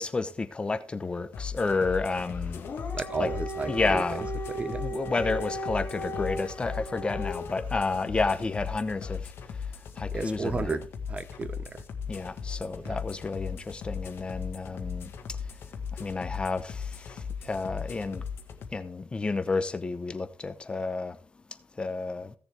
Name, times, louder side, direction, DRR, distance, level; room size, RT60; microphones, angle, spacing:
voice 1, 0.0-2.6 3.2-3.3 3.7-4.3 4.8-9.2 10.0-10.8 12.1-15.1 16.0-16.9 17.4-18.2 18.7-21.2 21.8-22.3, left 3 dB, 25° left, 0.8 m, -30 dB
sound 1, 1.3-18.7, left 6 dB, 70° left, 1.6 m, -38 dB
Dog, 2.5-7.7, right 1 dB, 50° left, 2.5 m, -37 dB
voice 2, 2.9-4.0 4.5-4.8 10.1-11.8 12.8-13.0, right 4 dB, 30° right, 0.7 m, -33 dB
16.5 x 6.9 x 3.4 m
cardioid pair, 130°, 4 cm